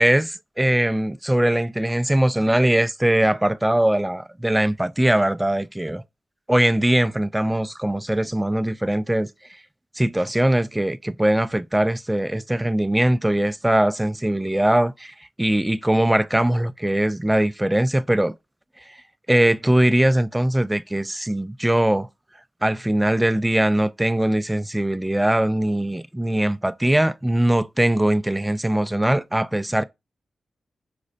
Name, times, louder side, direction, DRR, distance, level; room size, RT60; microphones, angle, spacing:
voice 1, 0.0-6.0 6.5-9.3 10.0-18.4 19.3-22.1 22.6-29.8, right 1 dB, 15° right, 0.3 m, -21 dB
5.0 x 2.0 x 2.5 m
supercardioid pair, 40°, 0 cm